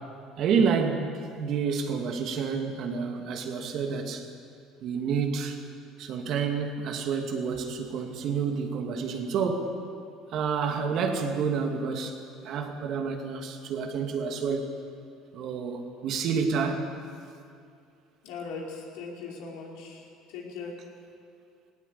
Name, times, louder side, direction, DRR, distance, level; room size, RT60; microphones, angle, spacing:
voice 1, 0.4-4.3 4.8-5.6 6.0-9.7 10.3-12.2 12.4-14.7 15.3-16.9, right 5 dB, 60° right, 4 dB, 2.5 m, -29 dB
voice 2, 18.2-20.7, left 4 dB, 80° left, -2 dB, 5.0 m, -39 dB
18.5 x 17.5 x 8.5 m, 2.3 s
supercardioid pair, 90°, 0 cm